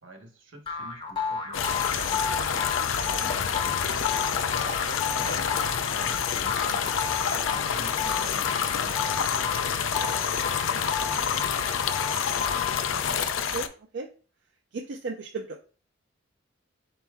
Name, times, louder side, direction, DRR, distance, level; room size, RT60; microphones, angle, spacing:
voice 1, 0.0-1.8 3.0-8.5 8.8-9.7 10.0-12.1, right 1 dB, 85° right, 3 dB, 1.1 m, -48 dB
sound 1, 0.7-13.2, left 5 dB, 25° left, 0.7 m, -33 dB
sound 2, 1.5-13.7, left 7 dB, 85° left, 0.4 m, -28 dB
voice 2, 2.8-3.4 13.4-13.7 13.9-14.1 14.7-15.6, right 4 dB, 65° right, 2 dB, 0.4 m, -36 dB
4.3 x 2.9 x 3.5 m, 0.39 s
head